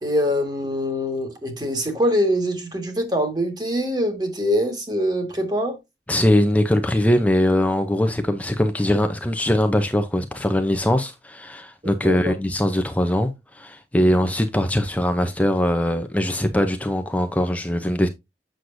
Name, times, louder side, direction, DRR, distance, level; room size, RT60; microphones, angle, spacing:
voice 1, 0.0-5.8 11.8-12.3, equal, 25° right, 1.7 m, -24 dB
voice 2, 6.1-18.1, left 1 dB, 10° left, 0.6 m, -21 dB
7.8 x 6.4 x 2.6 m
head